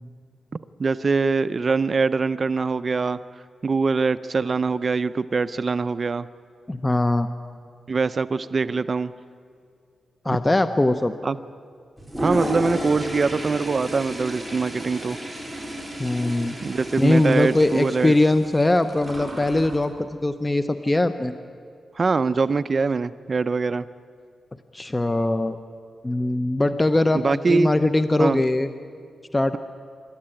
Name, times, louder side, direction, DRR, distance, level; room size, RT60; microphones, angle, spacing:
voice 1, 0.8-3.2 3.6-6.3 7.9-9.1 11.2-11.4 12.2-15.2 16.6-18.2 22.0-23.9 27.1-27.7 28.2-28.4, right 4 dB, 40° right, 14 dB, 0.5 m, -23 dB
voice 2, 6.7-7.3 10.2-11.1 16.0-16.5 17.0-21.3 24.7-25.6 26.0-28.7 29.3-29.6, left 2 dB, 15° left, 10 dB, 0.7 m, -21 dB
Toilet flush, 12.0-19.8, equal, 5° right, 4.0 m, -32 dB
27.0 x 13.0 x 10.0 m, 2.2 s
wide cardioid pair, 110°, 0 cm